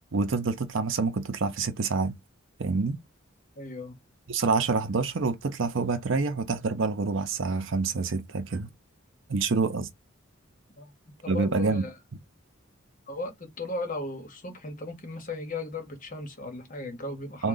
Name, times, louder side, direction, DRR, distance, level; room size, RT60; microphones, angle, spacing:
voice 1, 0.1-2.2 2.6-3.0 4.3-8.7 9.3-9.9 11.3-11.8 17.4-17.5, right 4 dB, 65° right, 0.6 m, -27 dB
voice 2, 3.6-3.9 10.8-10.9 11.2-12.0 13.1-17.5, left 2 dB, 40° left, 1.1 m, -36 dB
3.6 x 2.3 x 3.8 m
head